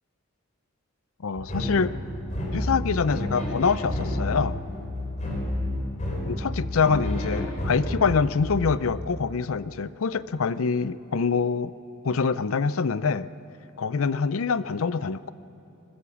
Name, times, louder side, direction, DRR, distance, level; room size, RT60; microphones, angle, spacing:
voice 1, 1.2-1.9 2.5-4.6 6.2-11.7 12.0-13.3 13.8-15.3, left 5 dB, 70° left, 16 dB, 0.5 m, -25 dB
sound 1, 1.4-8.8, left 1 dB, 35° left, 3.9 m, -30 dB
22.0 x 20.0 x 7.1 m, 2.7 s
head